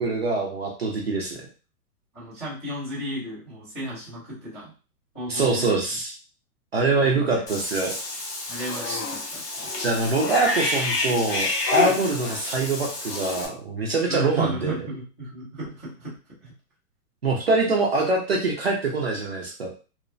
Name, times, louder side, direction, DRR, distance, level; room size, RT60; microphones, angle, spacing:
voice 1, 0.0-1.4 5.3-6.1 6.7-7.9 8.9-9.0 9.8-14.8 17.2-19.7, right 3 dB, 45° right, -1 dB, 0.4 m, -24 dB
voice 2, 2.1-4.7 5.1-5.8 7.0-7.4 8.5-9.7 14.1-16.2 16.4-16.5, right 1 dB, 10° left, -16 dB, 0.5 m, -34 dB
Cat / Bathtub (filling or washing), 7.5-13.5, left 3 dB, 90° left, 1.0 m, -28 dB
2.9 x 2.0 x 2.5 m, 0.35 s
hypercardioid pair, 170°, 47 cm